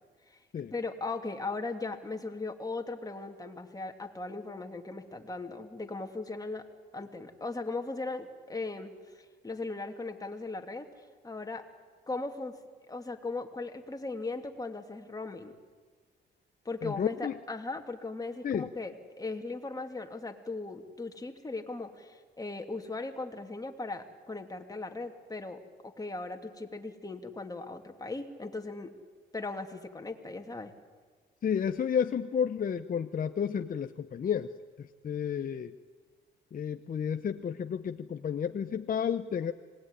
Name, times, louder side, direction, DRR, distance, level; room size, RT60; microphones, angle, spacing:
voice 1, 0.7-6.6 6.9-11.6 12.1-12.5 12.9-15.6 16.6-28.9 29.3-30.7, left 3 dB, 20° left, 4 dB, 2.8 m, -38 dB
voice 2, 16.8-17.3 18.4-18.7 31.4-34.5 34.8-35.7 36.5-39.5, left 8 dB, 45° left, 8 dB, 0.9 m, -31 dB
26.5 x 20.0 x 10.0 m, 1.5 s
cardioid pair, 90°, 20 cm